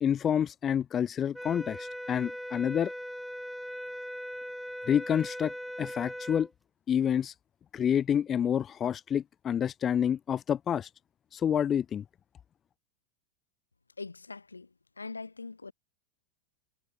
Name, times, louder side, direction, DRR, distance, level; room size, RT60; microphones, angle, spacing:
voice 1, 0.0-2.9 4.9-5.5 5.8-6.5 6.9-7.3 7.7-10.9 11.3-12.0, left 9 dB, 25° left, 0.5 m, -28 dB
sound 1, 1.3-6.5, equal, ahead, 1.2 m, -40 dB
voice 2, 14.0-14.7 15.0-15.7, left 4 dB, 80° left, 3.6 m, -42 dB
figure-of-eight pair, 90°, 0 cm